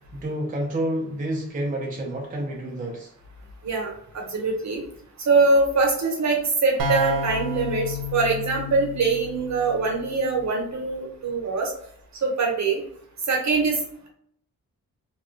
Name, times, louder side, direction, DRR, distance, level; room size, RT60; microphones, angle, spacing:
voice 1, 0.1-3.1, right 1 dB, 25° right, -1 dB, 0.5 m, -29 dB
voice 2, 3.6-4.8 5.3-11.7 12.2-12.8 13.3-13.8, right 3 dB, 55° right, 0 dB, 0.9 m, -23 dB
sound 1, 6.8-10.4, left 2 dB, 90° right, 0.6 m, -31 dB
2.4 x 2.2 x 3.1 m, 0.67 s
wide cardioid pair, 125°, 33 cm